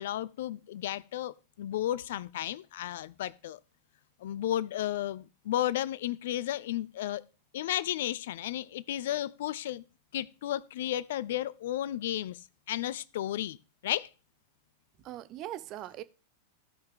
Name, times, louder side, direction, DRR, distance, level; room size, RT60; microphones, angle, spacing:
voice 1, 0.0-3.6 4.2-7.2 7.5-9.8 10.1-13.6 13.8-14.1, left 13 dB, 55° left, 0.4 m, -33 dB
voice 2, 15.0-16.0, right 13 dB, 35° right, 0.7 m, -40 dB
16.0 x 5.6 x 3.5 m
figure-of-eight pair, 90°, 0 cm